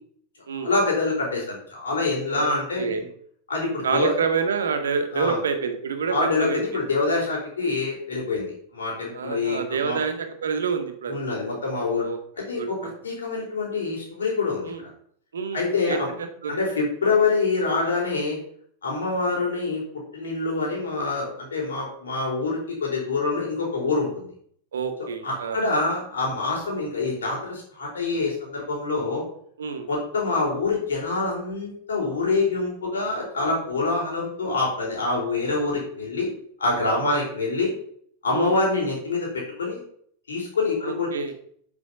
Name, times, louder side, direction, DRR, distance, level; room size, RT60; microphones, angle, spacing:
voice 1, 0.6-2.9 3.5-4.1 5.1-5.4 6.1-10.0 11.1-12.1 12.4-14.7 15.5-16.1 16.5-18.4 18.8-19.8 20.1-24.3 25.2-29.2 29.9-36.3 36.6-37.7 38.2-39.8 40.3-41.3, left 3 dB, 70° left, -2 dB, 4.5 m, -26 dB
voice 2, 2.3-3.0 3.8-6.6 9.1-11.2 12.0-12.7 14.6-14.8 15.3-16.6 19.3-19.4 24.7-25.8 29.6-29.9 37.1-37.3 38.3-38.5 40.8-41.3, right 5 dB, 65° right, 7 dB, 1.9 m, -28 dB
8.4 x 8.3 x 7.0 m, 0.63 s
figure-of-eight pair, 90°, 0 cm